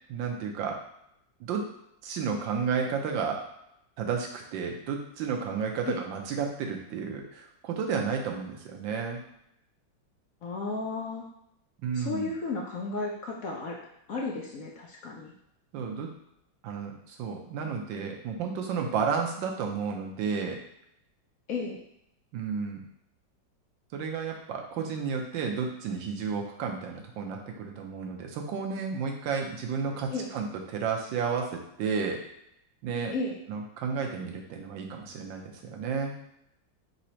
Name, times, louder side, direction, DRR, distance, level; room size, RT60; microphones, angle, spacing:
voice 1, 0.1-0.8 1.4-1.6 2.0-3.4 4.0-9.2 11.8-12.3 15.7-16.1 16.6-20.6 22.3-22.8 23.9-32.2 32.8-33.1 33.5-36.1, right 6 dB, 90° right, 2 dB, 1.4 m, -32 dB
voice 2, 10.4-11.2 11.9-13.8 14.1-15.3 21.5-21.8 30.1-30.3 33.1-33.4, left 3 dB, 65° left, -2 dB, 0.9 m, -33 dB
4.0 x 2.7 x 4.3 m, 0.77 s
omnidirectional pair, 2.0 m